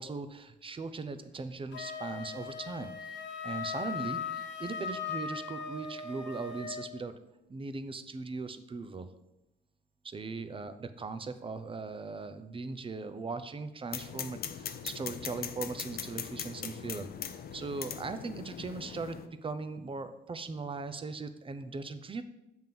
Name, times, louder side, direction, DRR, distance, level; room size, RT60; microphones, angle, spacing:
voice 1, 0.0-2.9 3.4-7.1 7.5-9.1 10.0-22.2, right 4 dB, 25° right, 10 dB, 0.6 m, -39 dB
Wind instrument woodwind instrument, 1.7-6.9, left 6 dB, 65° left, 1.1 m, -39 dB
sound 1, 13.9-19.3, left 8 dB, 50° left, 0.6 m, -40 dB
7.4 x 3.7 x 5.9 m, 0.91 s
cardioid pair, 90°, 20 cm